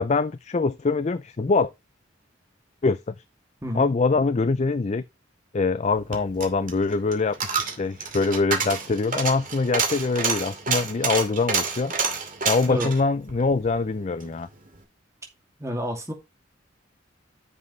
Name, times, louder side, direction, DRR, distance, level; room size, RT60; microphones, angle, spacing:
voice 1, 0.0-1.7 2.8-3.1 3.7-5.0 5.5-11.9 12.5-14.5, left 4 dB, 35° left, 0.4 m, -24 dB
Coin (dropping), 5.9-14.3 14.7-14.8, right 5 dB, 45° right, 2.4 m, -29 dB
voice 2, 15.6-16.1, equal, 15° right, 2.5 m, -29 dB
9.4 x 7.3 x 3.2 m
head